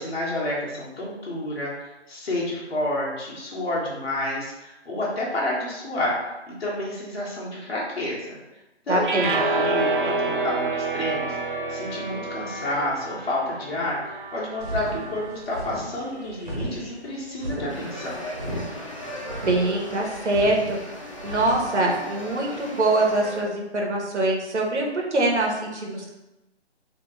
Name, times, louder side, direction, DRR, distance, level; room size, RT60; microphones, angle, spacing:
voice 1, 0.0-6.2 6.5-8.4 8.9-14.0 14.3-18.2, left 1 dB, 60° left, -5 dB, 1.4 m, -30 dB
voice 2, 8.9-9.4 19.4-20.8 21.2-26.1, right 2 dB, 80° right, -1 dB, 1.2 m, -24 dB
sound 1, 9.0-15.3, right 3 dB, 50° right, 0.4 m, -28 dB
sound 2, 14.6-21.7, right 1 dB, 35° right, 1.5 m, -34 dB
sound 3, 17.7-23.4, equal, 30° left, 0.5 m, -37 dB
4.0 x 3.1 x 3.2 m, 1.0 s
hypercardioid pair, 165°, 34 cm